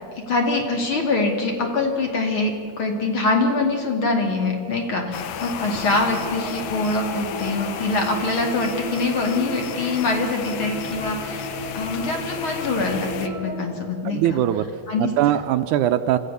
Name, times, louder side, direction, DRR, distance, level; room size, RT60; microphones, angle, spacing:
voice 1, 0.3-11.5 11.7-14.4 14.9-15.1, left 3 dB, 40° left, 2 dB, 2.9 m, -24 dB
sound 1, 5.1-13.3, left 8 dB, 65° left, 1.8 m, -33 dB
sound 2, 5.4-13.6, equal, 85° left, 8.2 m, -35 dB
voice 2, 14.1-14.7 15.0-16.2, right 12 dB, 80° right, 10 dB, 2.0 m, -21 dB
25.0 x 15.5 x 6.9 m, 2.2 s
omnidirectional pair, 3.7 m